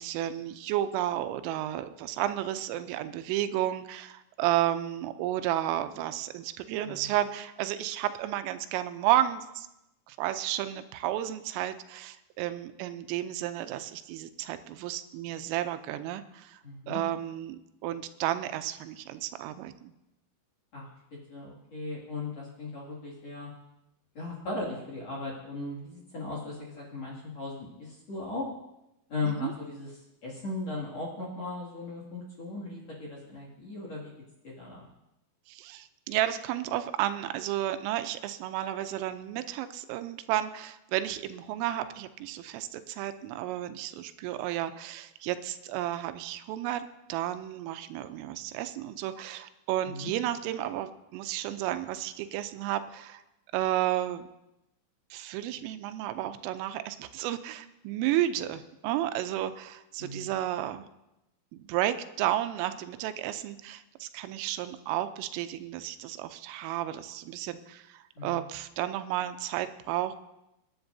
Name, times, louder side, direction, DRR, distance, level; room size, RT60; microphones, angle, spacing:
voice 1, 0.0-9.7 10.1-16.6 16.9-19.9 29.2-29.5 35.5-53.2 53.5-54.3 55.1-60.9 61.5-70.2, right 13 dB, 85° right, 10 dB, 3.2 m, -32 dB
voice 2, 16.6-17.0 20.7-20.9 21.3-23.5 24.1-28.5 29.1-29.9 30.2-34.1 34.4-34.9 49.8-50.1 60.0-60.3 68.2-68.4, left 3 dB, 45° left, -3 dB, 2.6 m, -37 dB
26.0 x 10.5 x 2.7 m, 0.91 s
omnidirectional pair, 5.7 m